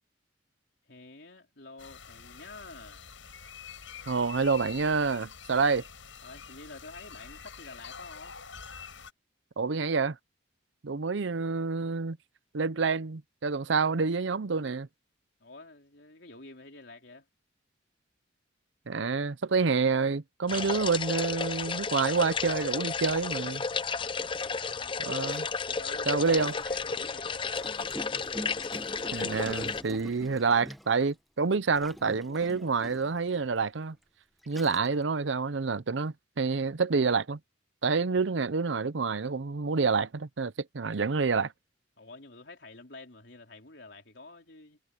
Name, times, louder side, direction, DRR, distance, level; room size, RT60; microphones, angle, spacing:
voice 1, 0.9-3.1 6.2-8.4 15.4-17.3 24.4-25.3 25.7-27.8 42.0-44.8, left 3 dB, 60° left, 3.7 m, -49 dB
sound 1, 1.8-9.1, left 6 dB, 80° left, 6.7 m, -46 dB
voice 2, 4.1-5.8 9.6-10.2 10.8-12.2 12.5-14.9 18.9-23.6 25.0-25.5 26.1-26.5 29.1-34.0 34.5-37.4 37.8-41.5, right 4 dB, 70° right, 0.6 m, -28 dB
sound 2, 20.5-29.8, left 5 dB, 25° left, 0.5 m, -33 dB
Gurgling, 23.3-23.4 24.2-26.9 27.5-31.1 31.8-33.2 33.9-34.0 34.4-35.0, equal, ahead, 1.1 m, -45 dB
head